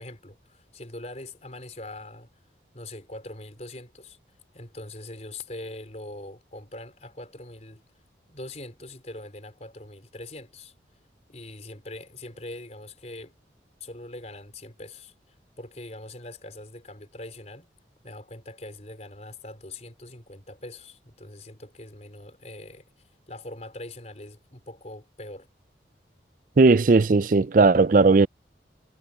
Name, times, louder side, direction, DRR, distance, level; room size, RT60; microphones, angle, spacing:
voice 1, 0.0-2.3 2.7-4.2 4.5-7.8 8.3-10.7 11.3-13.3 13.8-17.7 18.0-22.8 23.3-25.5, left 1 dB, 40° left, 4.6 m, -42 dB
voice 2, 26.6-28.3, right 3 dB, 45° right, 0.5 m, -17 dB
head